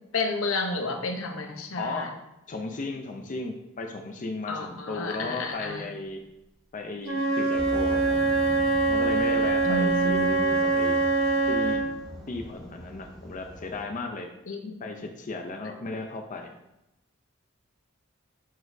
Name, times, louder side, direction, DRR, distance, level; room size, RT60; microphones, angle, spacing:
voice 1, 0.1-2.1 4.5-5.9 9.6-10.3 14.5-14.8, left 2 dB, 80° left, 4 dB, 0.8 m, -31 dB
voice 2, 1.8-2.1 2.5-6.2 6.7-8.3 8.9-11.0 11.5-11.8 12.3-14.3 14.8-16.5, left 3 dB, 40° left, 4 dB, 0.5 m, -35 dB
Wind instrument woodwind instrument, 7.0-12.0, right 3 dB, 70° right, 1.1 m, -24 dB
sound 1, 7.5-13.8, equal, ahead, 1.2 m, -42 dB
9.3 x 4.1 x 2.7 m, 0.90 s
head